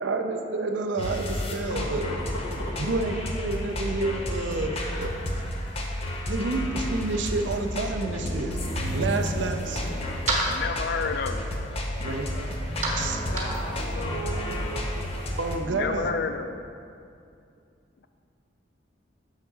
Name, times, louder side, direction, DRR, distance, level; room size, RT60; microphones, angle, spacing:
voice 1, 0.0-2.1 2.8-5.1 6.3-8.6 8.9-9.9 12.0-12.3 12.9-13.2 15.4-16.2, right 3 dB, 70° right, 5 dB, 0.5 m, -29 dB
sound 1, 1.0-15.6, equal, 30° left, 0.7 m, -31 dB
voice 2, 1.6-2.9 13.3-15.1, equal, 75° left, -2 dB, 1.1 m, -37 dB
sound 2, 9.3-15.1, right 2 dB, 40° right, 1.1 m, -34 dB
voice 3, 10.4-11.5 15.7-16.6, left 5 dB, 55° left, 8 dB, 0.3 m, -30 dB
6.5 x 3.6 x 5.9 m, 2.4 s
head